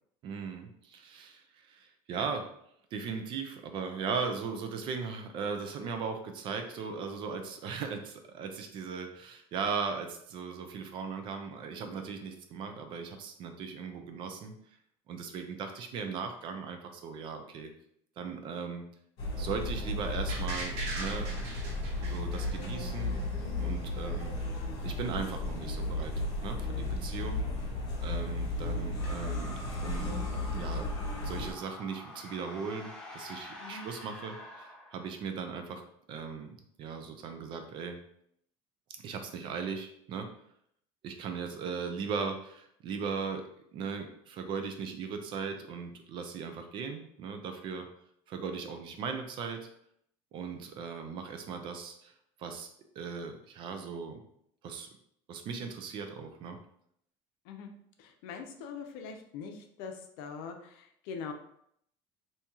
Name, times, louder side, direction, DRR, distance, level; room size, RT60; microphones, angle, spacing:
voice 1, 0.2-2.5 2.9-14.5 15.1-17.7 18.2-18.9 19.4-21.3 22.0-23.2 23.6-24.4 24.8-27.4 28.0-30.2 30.6-30.9 31.2-35.8 36.1-38.0 39.0-40.3 41.0-43.4 43.7-47.9 48.3-49.7 50.3-52.1 52.4-52.7 53.0-54.2 54.6-54.9 55.3-56.6, right 5 dB, 45° right, 6 dB, 0.5 m, -38 dB
sound 1, 19.2-31.5, left 2 dB, 65° left, 1.4 m, -34 dB
sound 2, 20.3-23.2 23.6-23.7, right 2 dB, 65° right, 1.3 m, -40 dB
sound 3, 29.0-35.4, left 1 dB, 5° left, 0.6 m, -47 dB
voice 2, 58.0-61.3, left 5 dB, 85° left, 5 dB, 0.6 m, -42 dB
2.9 x 2.8 x 3.5 m, 0.71 s
cardioid pair, 150°, 12 cm